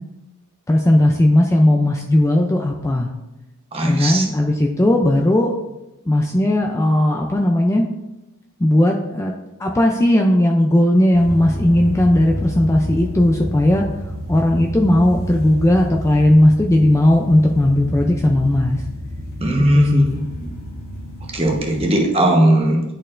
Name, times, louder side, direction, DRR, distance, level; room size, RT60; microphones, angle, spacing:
voice 1, 0.7-3.1 3.9-5.5 6.1-7.9 8.6-9.3 9.6-13.8 14.3-18.8 19.6-20.2, left 1 dB, 15° left, 1 dB, 0.4 m, -16 dB
voice 2, 3.7-4.2 19.4-20.2 21.3-22.8, right 1 dB, 25° right, 1 dB, 0.9 m, -17 dB
sound 1, 11.1-21.8, equal, 40° left, 1.9 m, -30 dB
10.5 x 4.4 x 2.5 m, 0.98 s
head